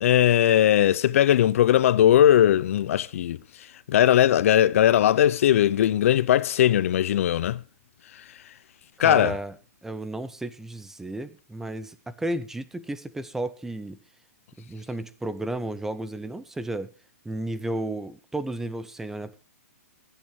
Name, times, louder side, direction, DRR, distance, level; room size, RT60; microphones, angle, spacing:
voice 1, 0.0-3.4 3.9-7.6 9.0-9.4, left 11 dB, 60° left, 0.6 m, -19 dB
voice 2, 9.0-9.6 9.8-14.0 14.6-16.9 17.2-19.4, right 1 dB, 5° right, 0.6 m, -33 dB
22.5 x 8.9 x 3.2 m
hypercardioid pair, 140°, 8 cm